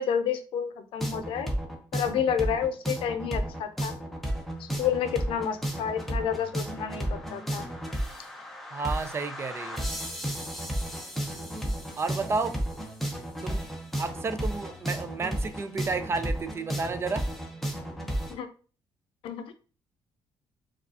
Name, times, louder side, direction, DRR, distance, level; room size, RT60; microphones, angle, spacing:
voice 1, 0.0-1.5 1.9-3.9 4.8-7.6 18.3-18.5 19.2-19.5, left 8 dB, 80° left, 9 dB, 0.5 m, -30 dB
sound 1, 1.0-18.3, right 1 dB, ahead, 0.7 m, -33 dB
voice 2, 8.7-9.9 12.0-12.6 13.4-13.7 14.0-17.2, right 4 dB, 30° right, 10 dB, 0.3 m, -31 dB
4.5 x 2.4 x 2.7 m, 0.37 s
cardioid pair, 130°, 9 cm